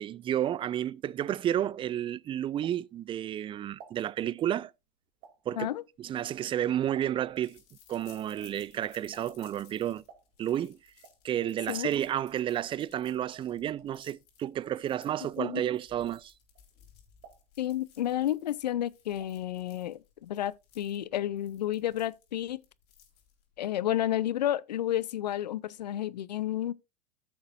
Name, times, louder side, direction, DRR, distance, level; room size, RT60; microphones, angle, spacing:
voice 1, 0.0-4.7 5.5-5.7 6.0-7.6 7.9-10.0 10.4-10.8 11.2-16.3, right 11 dB, 25° right, 0.4 m, -31 dB
sound 1, 1.0-3.2 3.5-7.5 7.8-15.1 15.4-15.9 16.4-18.1 18.4-19.5 19.8-19.9 20.1-20.2, right 7 dB, 55° right, 2.6 m, -57 dB
sound 2, 6.2-23.6, left 8 dB, 55° left, 3.8 m, -61 dB
voice 2, 15.2-15.6 17.6-22.6 23.6-26.7, left 12 dB, 80° left, 0.5 m, -31 dB
14.5 x 6.6 x 2.4 m
hypercardioid pair, 85°, 21 cm